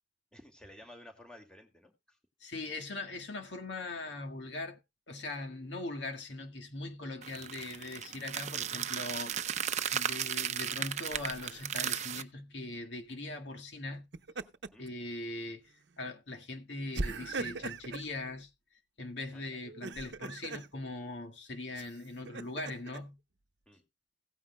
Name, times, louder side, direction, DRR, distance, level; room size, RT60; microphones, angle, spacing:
voice 1, 0.3-2.2 14.7-14.9 19.3-19.6 23.7-23.8, left 1 dB, 5° left, 2.2 m, -54 dB
voice 2, 2.4-4.8 5.1-9.6 9.9-14.1 14.8-18.5 19.0-23.2, left 2 dB, 75° left, 1.8 m, -41 dB
sound 1, 7.2-12.2, right 9 dB, 40° right, 0.6 m, -35 dB
Laughter, 11.1-11.7 13.9-14.9 15.3-15.5 16.9-18.1 19.6-20.7 21.7-23.0, right 3 dB, 70° right, 0.8 m, -40 dB
16.5 x 9.4 x 2.2 m
head